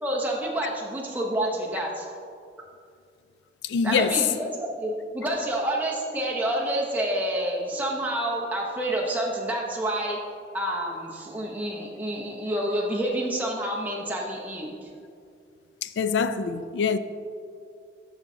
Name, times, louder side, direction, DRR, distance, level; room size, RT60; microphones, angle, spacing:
voice 1, 0.0-2.1 3.8-10.2 10.5-14.9, right 1 dB, 10° right, 0.8 m, -28 dB
voice 2, 3.6-4.2 15.8-17.0, left 6 dB, 90° left, 0.4 m, -24 dB
12.5 x 4.2 x 2.7 m
head